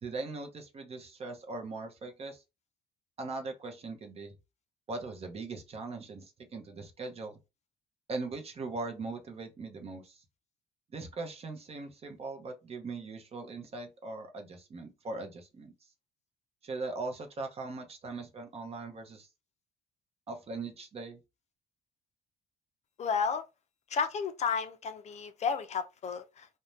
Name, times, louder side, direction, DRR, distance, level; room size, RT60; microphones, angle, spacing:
voice 1, 0.0-2.4 3.2-4.3 4.9-7.4 8.1-10.2 10.9-15.7 16.6-19.3 20.3-21.2, right 3 dB, 35° right, 0.8 m, -40 dB
voice 2, 23.0-23.4 23.9-26.5, left 6 dB, 40° left, 0.4 m, -32 dB
2.6 x 2.1 x 3.2 m
cardioid pair, 110°, 17 cm